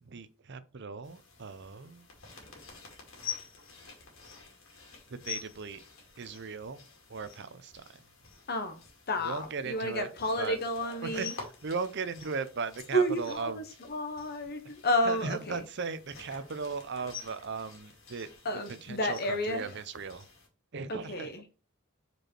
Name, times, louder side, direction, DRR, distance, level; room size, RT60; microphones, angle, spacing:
voice 1, 0.0-2.1 5.1-5.8 6.2-8.1 9.2-10.1 10.4-10.6 11.0-13.8 15.0-18.3 18.8-20.3 20.7-21.3, right 4 dB, 55° right, 0.7 m, -37 dB
sound 1, 1.0-20.5, left 7 dB, 70° left, 2.3 m, -48 dB
voice 2, 8.5-8.8 9.1-11.3 12.9-13.6 13.9-15.6 18.4-19.7 20.9-21.4, equal, 50° left, 1.0 m, -31 dB
5.2 x 4.7 x 4.4 m
head